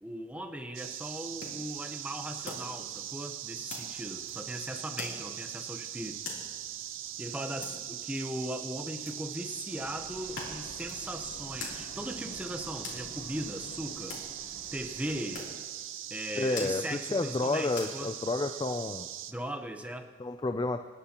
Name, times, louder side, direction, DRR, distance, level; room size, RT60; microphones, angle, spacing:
voice 1, 0.0-6.2 7.2-14.2 14.7-15.5 16.1-18.1 19.3-20.1, right 1 dB, 5° right, 6 dB, 0.7 m, -38 dB
sound 1, 0.7-19.3, right 11 dB, 85° right, 0.6 m, -41 dB
sound 2, 1.2-18.6, left 4 dB, 70° left, 3.1 m, -47 dB
sound 3, 9.7-15.4, left 2 dB, 40° left, 0.9 m, -50 dB
voice 2, 16.4-19.1 20.2-20.9, left 2 dB, 20° left, 7 dB, 0.3 m, -30 dB
26.0 x 9.8 x 2.9 m, 1.5 s
head